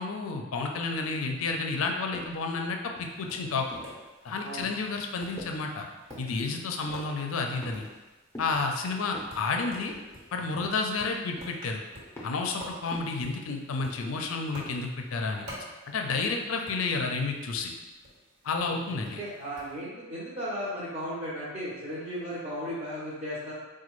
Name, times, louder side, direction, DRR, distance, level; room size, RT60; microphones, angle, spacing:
voice 1, 0.0-3.8 4.2-5.9 6.2-7.9 8.4-9.9 10.3-11.8 12.2-15.5 15.9-17.7 18.4-19.2, left 4 dB, 75° left, 3 dB, 0.4 m, -31 dB
sound 1, 2.1-2.5 3.0-4.0 4.6-4.9 5.4-5.7 6.1-6.4 6.8-7.2 7.6-8.1 8.3-8.7 9.1-9.5 9.9-10.3 10.6-11.0 11.4-11.7 12.2-12.5 12.9-13.2, left 1 dB, 15° left, 0.6 m, -45 dB
Tap, 3.0-19.8, equal, 60° right, 1.2 m, -50 dB
voice 2, 4.4-4.7 18.6-23.5, equal, 30° right, -10 dB, 0.7 m, -36 dB
4.2 x 2.2 x 3.0 m, 1.2 s
head